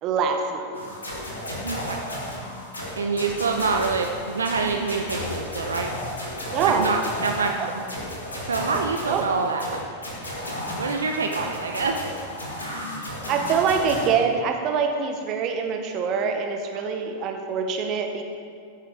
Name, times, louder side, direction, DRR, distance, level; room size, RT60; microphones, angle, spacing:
voice 1, 0.0-0.8 6.5-6.9 7.6-7.7 9.1-9.2 13.3-18.2, right 6 dB, 35° right, 4 dB, 1.2 m, -24 dB
sound 1, 0.7-14.1, left 1 dB, 75° left, 2.1 m, -33 dB
voice 2, 1.6-2.0 3.0-5.9 6.7-7.8 8.4-9.9 10.7-12.2 12.6-13.1 16.7-16.9, right 4 dB, 70° right, 3 dB, 0.6 m, -26 dB
14.0 x 7.3 x 3.5 m, 2.2 s
figure-of-eight pair, 90°, 0 cm